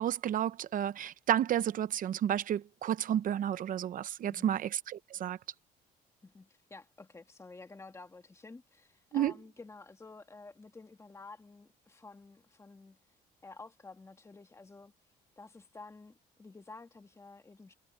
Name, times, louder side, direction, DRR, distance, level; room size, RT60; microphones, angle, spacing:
voice 1, 0.0-5.4 9.1-9.3, right 10 dB, 55° right, 0.8 m, -31 dB
voice 2, 4.2-4.6 6.2-13.0 13.4-14.9 15.4-17.7, left 3 dB, 15° left, 2.1 m, -51 dB
cardioid pair, 110°, 17 cm